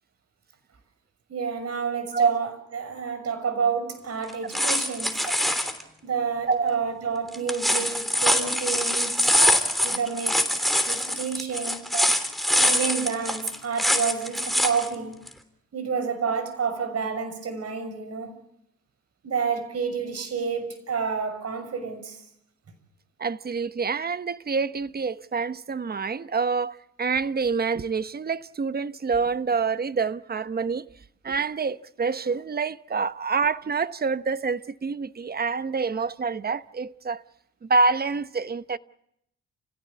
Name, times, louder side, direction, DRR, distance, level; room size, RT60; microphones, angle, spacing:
voice 1, 1.3-5.3 6.0-10.6 10.8-11.9 12.6-15.2 15.7-18.4 19.2-22.2, right 6 dB, 55° right, 6.4 m, -29 dB
sound 1, 4.3-5.8 7.3-14.9 15.3-15.4, equal, ahead, 3.2 m, -24 dB
voice 2, 23.2-30.9 31.2-37.2 37.6-38.8, right 4 dB, 30° right, 1.0 m, -27 dB
29.5 x 16.5 x 8.4 m
cardioid pair, 90°, 30 cm